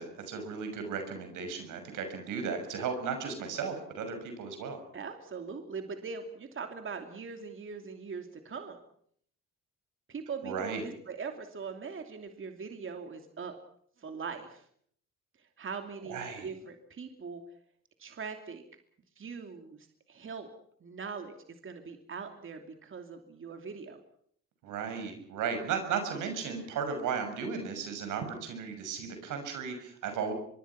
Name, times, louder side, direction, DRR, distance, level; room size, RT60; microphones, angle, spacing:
voice 1, 0.0-4.8 10.4-10.8 16.0-16.5 24.6-30.3, right 6 dB, 85° right, 7 dB, 6.4 m, -35 dB
voice 2, 4.9-8.8 10.1-13.6 14.0-14.7 15.4-17.4 18.0-18.6 19.2-20.5 20.8-24.0, right 5 dB, 45° right, 5 dB, 2.8 m, -41 dB
24.5 x 23.0 x 5.9 m, 0.64 s
cardioid pair, 90°, 30 cm